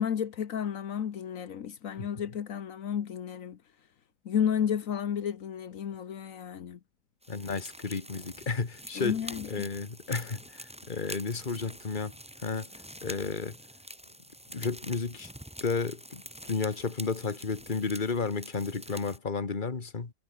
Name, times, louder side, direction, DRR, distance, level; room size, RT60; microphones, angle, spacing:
voice 1, 0.0-3.6 4.2-6.8 9.0-9.7, left 8 dB, 80° left, 1.5 m, -32 dB
sound 1, 7.2-19.2, equal, 5° right, 2.0 m, -46 dB
voice 2, 7.3-9.2 9.5-12.1 12.4-12.7 13.0-13.6 14.5-15.3 15.6-20.1, left 4 dB, 35° left, 1.9 m, -32 dB
omnidirectional pair, 1.4 m